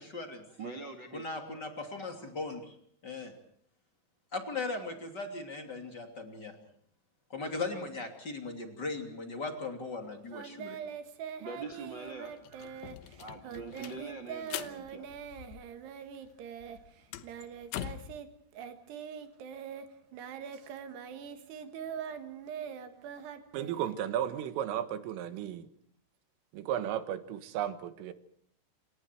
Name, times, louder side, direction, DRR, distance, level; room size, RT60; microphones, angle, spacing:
voice 1, 0.0-0.4 1.1-2.7 3.0-3.3 4.3-6.5 7.3-10.8, left 3 dB, 25° left, 4 dB, 2.6 m, -38 dB
voice 2, 0.6-1.4 11.4-12.3 13.2-15.1, right 3 dB, 45° right, 7 dB, 1.6 m, -43 dB
Singing, 10.3-18.3 18.5-24.4, right 8 dB, 65° right, 3.4 m, -43 dB
sound 1, 11.7-11.8 12.1-16.0 16.3-18.2, left 12 dB, 75° left, 2.3 m, -43 dB
voice 3, 23.5-25.7 26.5-28.1, right 10 dB, 80° right, 11 dB, 4.1 m, -34 dB
28.5 x 27.5 x 4.6 m, 0.63 s
omnidirectional pair, 5.7 m